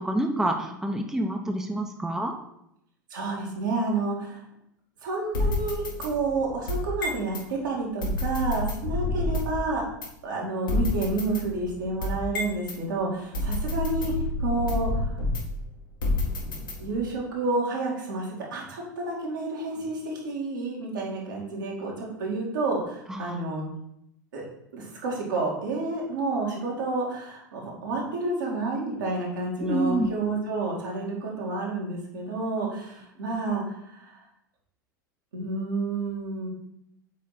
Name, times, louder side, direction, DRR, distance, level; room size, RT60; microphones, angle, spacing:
voice 1, 0.0-2.3 23.1-23.4 29.6-30.1, right 1 dB, 5° right, 3 dB, 0.8 m, -27 dB
voice 2, 3.1-4.4 5.0-9.8 10.2-14.1 14.4-15.1 16.4-23.6 24.3-24.5 24.7-34.2 35.3-36.5, right 3 dB, 75° right, -3 dB, 2.6 m, -30 dB
sound 1, 5.3-7.4 8.0-9.6 10.0-10.1 10.7-12.8 13.3-15.6 16.0-17.1, left 2 dB, 80° left, 1.9 m, -29 dB
8.2 x 4.2 x 4.2 m, 0.78 s
hypercardioid pair, 85°, 11 cm